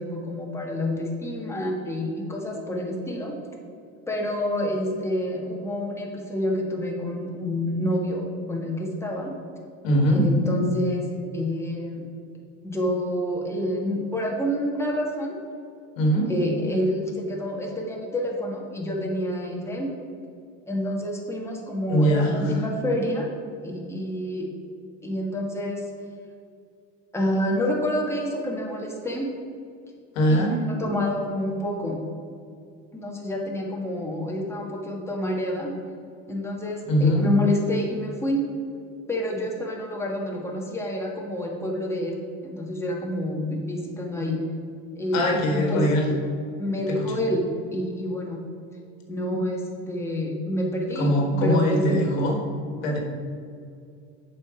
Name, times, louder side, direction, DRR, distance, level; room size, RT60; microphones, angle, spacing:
voice 1, 0.0-3.3 4.1-8.2 8.5-9.3 10.1-11.1 11.3-12.0 12.6-15.4 16.3-19.9 20.7-23.3 23.6-24.5 25.0-25.8 27.1-29.3 30.3-32.0 32.9-35.7 36.3-38.4 39.1-44.4 44.9-45.8 46.6-47.4 47.7-48.4 49.1-51.1 51.4-52.0, left 1 dB, 5° left, -2 dB, 1.6 m, -28 dB
voice 2, 9.8-10.2 16.0-16.3 21.9-22.6 30.1-30.6 36.9-37.3 45.1-46.0 47.0-47.1 50.9-52.4 52.8-53.0, equal, 90° left, 1 dB, 1.5 m, -21 dB
7.3 x 5.1 x 5.0 m, 2.4 s
supercardioid pair, 90°, 38 cm